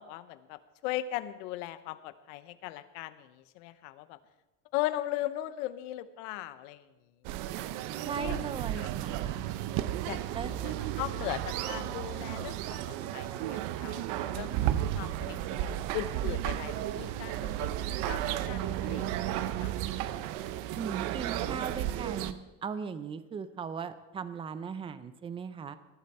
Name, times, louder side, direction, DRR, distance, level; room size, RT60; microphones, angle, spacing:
voice 1, 0.0-4.2 4.7-6.9 7.6-7.7 8.2-8.5 10.1-20.0, left 14 dB, 75° left, 13 dB, 1.0 m, -39 dB
sound 1, 7.2-22.3, right 12 dB, 55° right, 0.8 m, -33 dB
voice 2, 8.1-9.2 10.3-10.6 20.8-22.4 22.6-25.8, right 6 dB, 15° right, 13 dB, 0.5 m, -38 dB
19.0 x 12.0 x 4.3 m, 1.1 s
cardioid pair, 165°, 37 cm